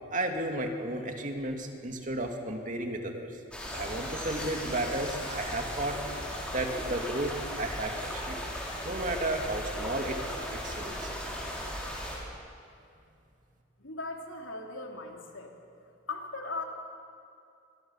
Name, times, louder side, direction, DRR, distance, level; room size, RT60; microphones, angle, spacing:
voice 1, 0.1-3.3 3.7-6.0 6.5-8.4 8.8-10.2 10.5-11.1, right 1 dB, 40° right, 3 dB, 2.3 m, -33 dB
sound 1, 3.5-12.2, equal, 5° left, 4.4 m, -37 dB
voice 2, 13.8-15.5 16.1-16.6, left 3 dB, 85° left, 1 dB, 3.3 m, -38 dB
25.5 x 22.5 x 7.2 m, 2.5 s
head